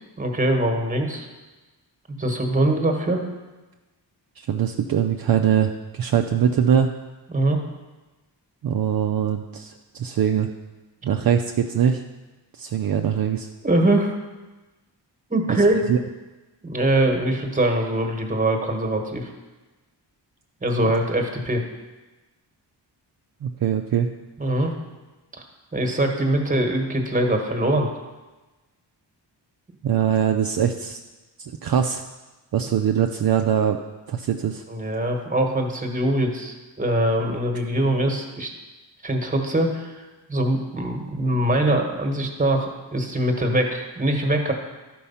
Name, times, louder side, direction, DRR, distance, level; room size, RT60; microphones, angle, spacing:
voice 1, 0.2-1.3 2.1-3.2 7.3-7.6 13.6-14.2 15.3-15.9 16.6-19.3 20.6-21.6 24.4-24.7 25.3-25.4 25.7-27.9 34.7-38.5 39.0-44.5, right 1 dB, 20° right, 3 dB, 1.3 m, -23 dB
voice 2, 4.4-6.9 8.6-10.5 11.0-12.0 12.6-13.5 15.5-15.6 15.9-16.0 23.4-24.1 29.8-31.0 31.4-32.0 32.5-33.8 34.1-34.6, right 8 dB, 55° right, 4 dB, 0.5 m, -22 dB
12.0 x 4.6 x 5.6 m, 1.2 s
wide cardioid pair, 110°, 43 cm